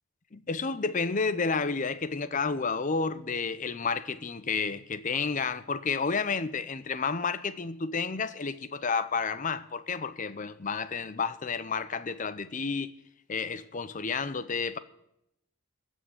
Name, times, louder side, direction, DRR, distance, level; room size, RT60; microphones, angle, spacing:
voice 1, 0.3-12.9 13.3-14.8, left 5 dB, 35° left, 0.6 m, -31 dB
14.5 x 6.3 x 8.0 m
head